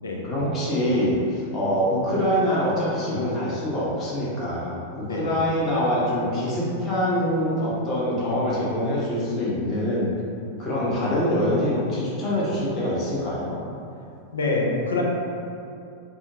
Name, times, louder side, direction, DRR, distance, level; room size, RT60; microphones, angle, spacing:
voice 1, 0.2-10.1 10.6-13.6, equal, 30° left, -7 dB, 0.9 m, -24 dB
voice 2, 14.3-15.0, left 3 dB, 70° left, -1 dB, 0.4 m, -25 dB
3.5 x 2.1 x 2.6 m, 2.5 s
figure-of-eight pair, 90°, 0 cm